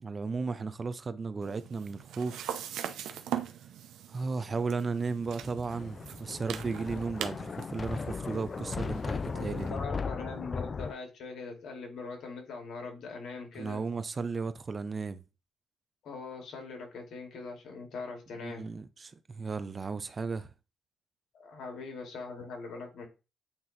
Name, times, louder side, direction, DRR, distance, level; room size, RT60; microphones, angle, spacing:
voice 1, 0.0-2.4 4.1-9.8 13.6-15.2 18.4-20.5, right 4 dB, 35° right, 0.6 m, -35 dB
sound 1, 1.4-9.7, right 10 dB, 80° right, 0.8 m, -42 dB
Thunder, 5.4-10.9, left 5 dB, 35° left, 0.3 m, -37 dB
voice 2, 9.2-13.8 16.0-18.7 21.3-23.1, left 4 dB, 70° left, 2.5 m, -42 dB
8.7 x 3.0 x 4.2 m
cardioid pair, 90°, 0 cm